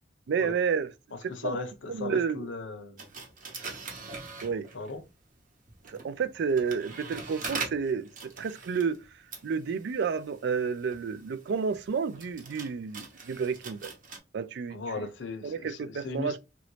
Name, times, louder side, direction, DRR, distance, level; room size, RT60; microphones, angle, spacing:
voice 1, 0.3-0.9 1.4-1.6 1.9-2.5 4.4-4.7 5.9-9.0 9.4-13.9 14.3-14.8 15.4-16.4, right 6 dB, 65° right, 0.4 m, -30 dB
voice 2, 1.1-3.1 4.7-5.0 14.7-16.4, left 3 dB, 80° left, 0.7 m, -37 dB
sound 1, 3.0-5.0 5.7-14.2, right 4 dB, 45° right, 0.9 m, -42 dB
3.0 x 2.6 x 3.1 m
head